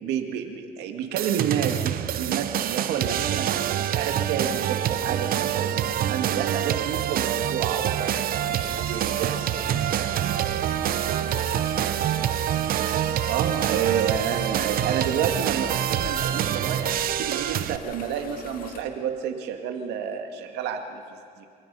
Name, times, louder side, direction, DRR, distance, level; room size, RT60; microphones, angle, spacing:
voice 1, 0.0-3.5 3.8-9.5 10.2-10.4 13.3-21.5, right 8 dB, 85° right, 5 dB, 2.0 m, -30 dB
sound 1, 1.2-17.8, right 11 dB, 60° right, 0.8 m, -26 dB
sound 2, 8.4-18.8, left 5 dB, 55° left, 2.2 m, -43 dB
voice 2, 9.3-12.1, left 4 dB, 80° left, 0 dB, 3.8 m, -46 dB
27.0 x 18.0 x 5.6 m, 2.3 s
cardioid pair, 110°, 17 cm